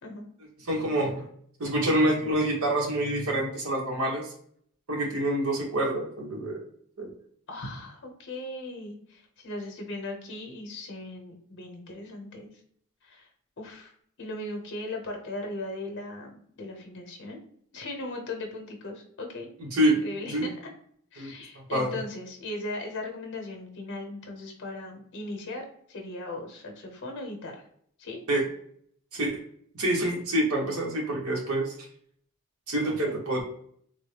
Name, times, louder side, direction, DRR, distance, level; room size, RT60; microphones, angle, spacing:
voice 1, 0.6-1.2 1.6-4.3 4.9-6.6 7.0-7.1 19.6-20.0 20.3-20.5 21.2-21.3 21.7-21.9 28.3-28.4 29.1-29.3 29.8-31.7 32.7-33.4, right 1 dB, 75° right, -2 dB, 1.2 m, -26 dB
voice 2, 7.5-12.5 13.0-13.3 13.6-13.9 14.2-17.4 17.7-19.5 19.8-20.6 21.1-27.6 28.0-28.2 33.0-33.2, left 2 dB, 55° left, 3 dB, 0.9 m, -38 dB
3.6 x 2.1 x 3.3 m, 0.63 s
head